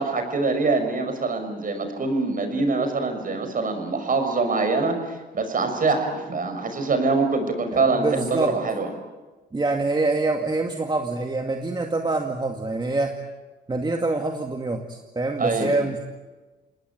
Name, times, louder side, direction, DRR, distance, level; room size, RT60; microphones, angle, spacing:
voice 1, 0.0-8.9 15.4-15.7, right 3 dB, 45° right, 7 dB, 5.9 m, -24 dB
voice 2, 7.7-8.5 9.5-13.1 13.7-16.1, right 3 dB, 20° right, 3 dB, 2.2 m, -25 dB
28.0 x 19.5 x 9.1 m, 1.3 s
cardioid pair, 90°, 20 cm